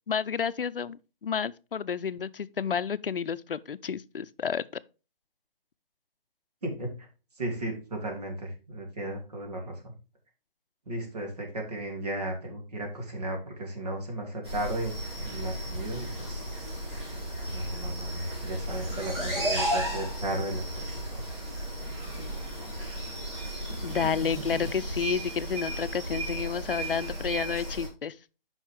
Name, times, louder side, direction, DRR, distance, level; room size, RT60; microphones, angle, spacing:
voice 1, 0.1-4.6 23.8-28.1, left 6 dB, 70° left, 0.6 m, -30 dB
voice 2, 7.4-9.9 10.9-16.4 17.5-21.2, right 1 dB, 45° right, 2.9 m, -35 dB
sound 1, 14.4-27.9, right 1 dB, 30° right, 3.1 m, -34 dB
9.0 x 5.6 x 3.5 m
hypercardioid pair, 175°, 29 cm